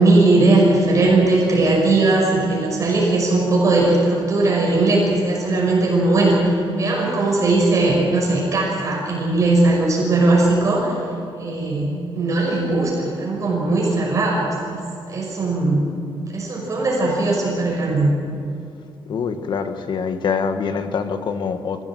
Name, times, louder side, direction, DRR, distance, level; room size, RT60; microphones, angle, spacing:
voice 1, 0.0-11.0 11.4-15.9 16.3-18.1, right 2 dB, 35° right, -3 dB, 5.8 m, -18 dB
voice 2, 19.1-21.8, left 6 dB, 55° left, 8 dB, 1.4 m, -24 dB
24.5 x 17.0 x 7.8 m, 2.4 s
wide cardioid pair, 170°, 9 cm